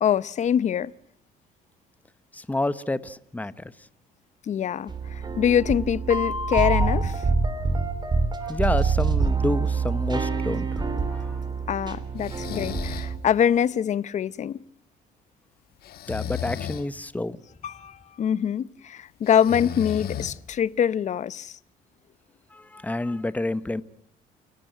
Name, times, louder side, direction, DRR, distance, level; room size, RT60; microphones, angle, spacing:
voice 1, 0.0-0.9 4.5-7.2 11.7-14.6 17.6-21.6, left 9 dB, 45° left, 0.8 m, -24 dB
voice 2, 2.3-3.5 8.4-10.8 11.1-11.3 16.1-17.4 22.5-23.8, left 2 dB, 10° left, 0.9 m, -29 dB
sound 1, 4.9-13.2, right 4 dB, 25° right, 3.2 m, -26 dB
Breathing, 12.2-13.1 15.8-16.9 19.2-20.6, left 10 dB, 65° left, 1.6 m, -34 dB
29.5 x 12.5 x 9.1 m
cardioid pair, 110°, 17 cm